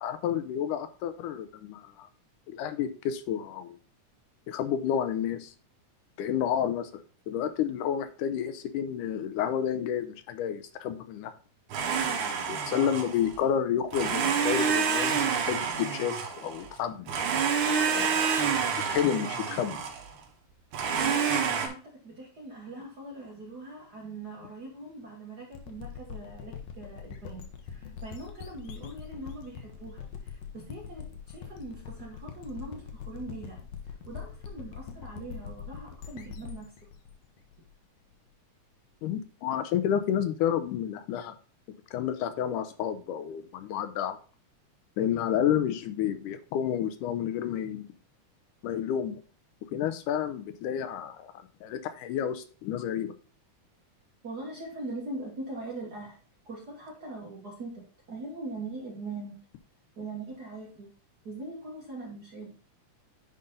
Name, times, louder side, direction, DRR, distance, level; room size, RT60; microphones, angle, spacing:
voice 1, 0.0-2.1 2.5-3.8 4.5-5.5 6.2-11.3 12.1-17.4 17.9-18.2 18.9-19.8 39.0-41.4 41.9-44.2 45.0-47.9 48.6-49.2 49.7-51.3 51.6-53.1, left 9 dB, 85° left, 10 dB, 2.2 m, -30 dB
Domestic sounds home sounds, 11.7-13.4 13.9-16.7 17.1-20.1 20.7-21.7, right 6 dB, 70° right, 2.6 m, -28 dB
voice 2, 21.0-33.6 33.9-36.7 54.2-56.2 56.4-59.4 60.0-60.9 61.2-62.6, right 2 dB, 45° right, -2 dB, 1.4 m, -41 dB
sound 1, 25.5-38.1, left 7 dB, 70° left, 1.8 m, -43 dB
9.4 x 4.0 x 3.7 m, 0.40 s
omnidirectional pair, 3.6 m